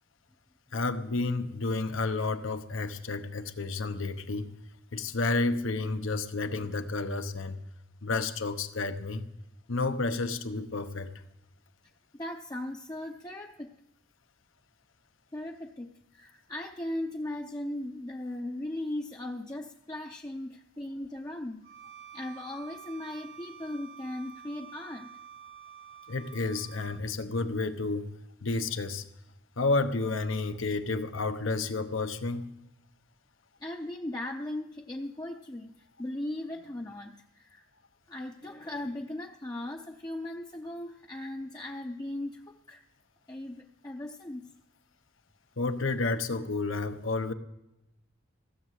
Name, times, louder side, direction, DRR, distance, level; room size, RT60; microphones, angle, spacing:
voice 1, 0.7-4.5 4.9-7.6 8.0-9.2 9.7-11.1 26.1-28.1 28.4-29.0 29.6-32.5 45.6-47.3, left 3 dB, 80° left, 8 dB, 1.0 m, -31 dB
voice 2, 12.1-13.7 15.3-21.6 22.1-25.1 33.6-37.6 38.1-42.8 43.3-44.5, left 1 dB, 20° left, 1 dB, 0.5 m, -38 dB
Bowed string instrument, 21.6-27.0, right 8 dB, 75° right, 1.9 m, -49 dB
15.5 x 6.5 x 7.6 m, 0.91 s
head